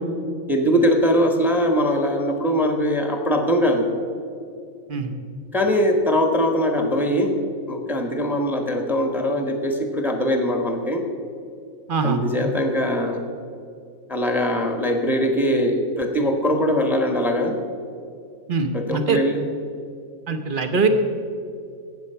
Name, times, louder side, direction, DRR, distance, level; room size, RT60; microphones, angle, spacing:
voice 1, 0.5-3.9 5.5-7.3 7.7-11.0 12.0-13.2 14.1-17.6 18.7-19.4, equal, ahead, 4 dB, 1.0 m, -21 dB
voice 2, 18.5-19.2 20.3-20.9, right 5 dB, 40° right, 7 dB, 0.9 m, -22 dB
16.5 x 7.0 x 5.6 m, 2.4 s
omnidirectional pair, 1.7 m